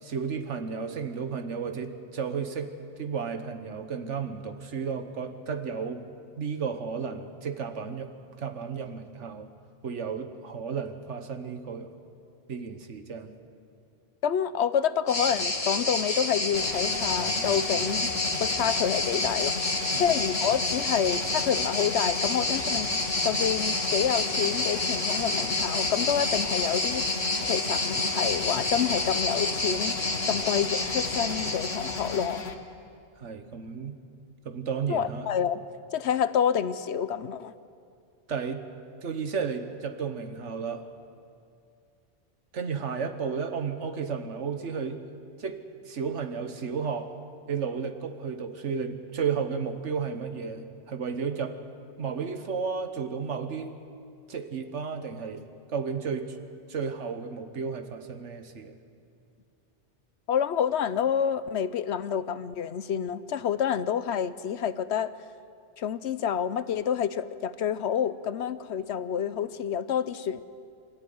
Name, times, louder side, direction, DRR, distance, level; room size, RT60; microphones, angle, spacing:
voice 1, 0.0-6.0 6.4-9.5 9.8-11.9 12.5-13.3 19.9-20.1 33.2-34.0 34.4-35.3 38.3-38.6 39.0-40.9 42.5-45.0 45.4-45.6 45.8-47.1 47.5-51.6 52.0-53.7 54.3-56.4 56.7-58.7, right 6 dB, 75° right, 8 dB, 1.6 m, -33 dB
voice 2, 14.2-18.1 18.4-19.5 19.9-22.9 23.2-30.0 30.3-32.4 34.9-35.6 35.9-37.5 60.3-65.1 65.8-70.4, left 8 dB, 70° left, 14 dB, 0.9 m, -28 dB
sound 1, 15.1-32.4, left 2 dB, 30° left, 1.7 m, -29 dB
sound 2, 16.5-32.5, left 4 dB, 85° left, 1.6 m, -36 dB
25.5 x 13.5 x 9.5 m, 2.4 s
omnidirectional pair, 1.2 m